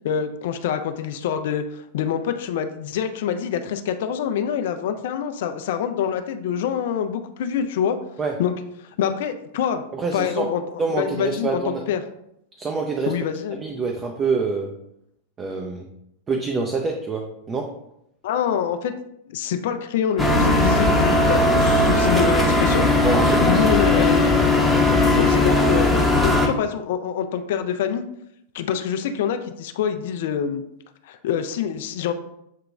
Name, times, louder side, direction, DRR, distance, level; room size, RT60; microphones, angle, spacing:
voice 1, 0.0-8.0 8.4-8.5 8.8-9.8 10.1-12.0 13.1-13.6 18.2-18.9 19.3-22.9 23.4-24.2 25.2-28.0 28.5-30.6 31.0-32.1, left 8 dB, 55° left, 8 dB, 0.4 m, -25 dB
voice 2, 9.9-10.5 10.8-11.8 12.6-13.1 13.5-14.7 15.4-15.9 16.3-17.7 23.0-23.6 23.9-24.1, right 4 dB, 25° right, 3 dB, 0.5 m, -26 dB
sound 1, 20.2-26.5, left 2 dB, 5° left, 0.8 m, -18 dB
7.4 x 2.8 x 2.3 m, 0.79 s
figure-of-eight pair, 90°, 0 cm